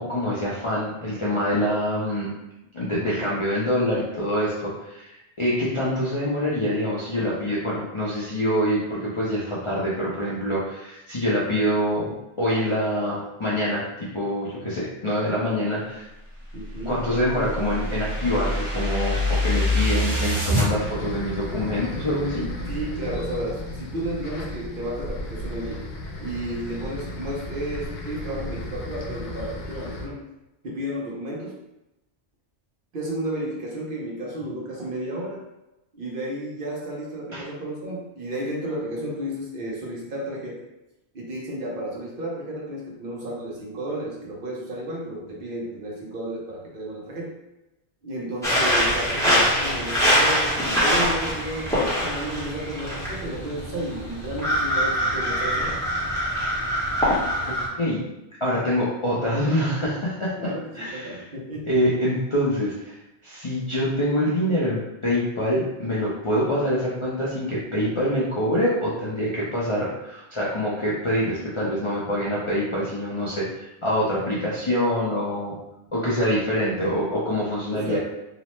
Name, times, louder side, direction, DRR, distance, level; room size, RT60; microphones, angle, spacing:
voice 1, 0.0-2.3 2.7-16.1 16.9-22.5 37.3-37.4 57.5-58.0 58.4-60.3 60.7-61.2 61.6-63.0 63.2-75.5 75.9-78.0, equal, 40° left, -9 dB, 0.4 m, -25 dB
voice 2, 16.5-17.0 22.7-25.9 26.2-30.2 30.6-31.6 32.9-35.4 35.9-40.6 41.1-47.4 48.0-55.7 60.4-61.7 77.7-78.0, right 1 dB, 55° right, -3 dB, 0.8 m, -32 dB
sound 1, 16.6-20.7, left 1 dB, 35° right, 1.0 m, -25 dB
sound 2, 20.6-30.1, left 1 dB, 90° left, 0.9 m, -34 dB
sound 3, 48.4-57.7, equal, 5° left, 0.7 m, -24 dB
2.9 x 2.0 x 3.0 m, 0.94 s
omnidirectional pair, 1.2 m